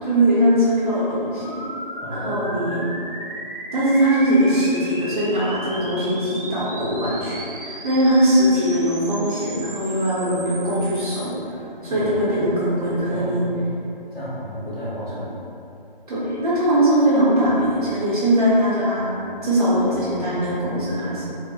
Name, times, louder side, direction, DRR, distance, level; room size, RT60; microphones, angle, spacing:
voice 1, 0.0-1.5 2.1-2.8 3.7-11.3 11.8-13.4 16.1-19.1 19.4-21.2, right 1 dB, 40° right, -10 dB, 0.9 m, -20 dB
sound 1, 1.4-11.3, right 1 dB, 65° right, 0.6 m, -36 dB
voice 2, 2.0-2.5 11.8-12.4 13.1-13.4 14.1-15.3, equal, 15° left, -16 dB, 0.6 m, -32 dB
3.2 x 2.1 x 3.2 m, 2.7 s
figure-of-eight pair, 160°, 29 cm